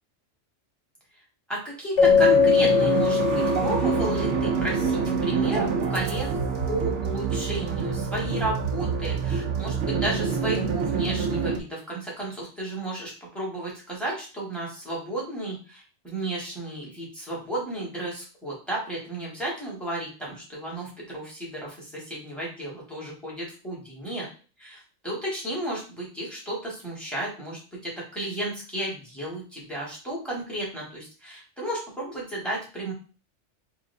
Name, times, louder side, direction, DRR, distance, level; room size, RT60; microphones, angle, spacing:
voice 1, 1.5-6.3 6.7-24.3 24.6-32.9, right 1 dB, ahead, -5 dB, 2.0 m, -33 dB
Keyboard (musical), 2.0-4.4, left 6 dB, 70° left, 1.1 m, -21 dB
sound 1, 2.0-11.6, right 5 dB, 80° right, 0.9 m, -26 dB
3.8 x 3.3 x 3.3 m, 0.35 s
omnidirectional pair, 1.2 m